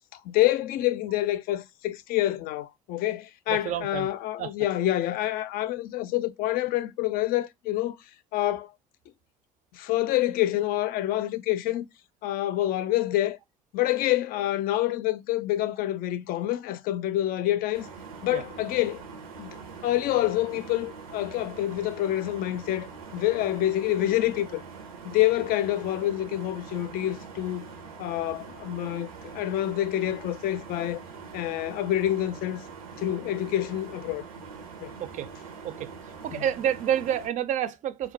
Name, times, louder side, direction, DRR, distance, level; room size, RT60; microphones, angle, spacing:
voice 1, 0.1-8.0 8.3-8.7 9.7-11.9 12.2-13.4 13.7-17.9 18.2-19.0 19.4-24.6 25.0-27.7 28.0-31.0 31.3-32.6 33.0-34.3 34.8-34.9 36.3-36.4, left 14 dB, 55° left, 0.4 m, -27 dB
voice 2, 3.5-4.1 4.4-4.5 18.3-18.4 35.0-35.3 35.6-35.9 36.2-38.1, right 10 dB, 45° right, 0.4 m, -29 dB
sound 1, 17.7-37.3, right 5 dB, 90° right, 0.7 m, -43 dB
2.3 x 2.1 x 3.8 m
hypercardioid pair, 65°, 18 cm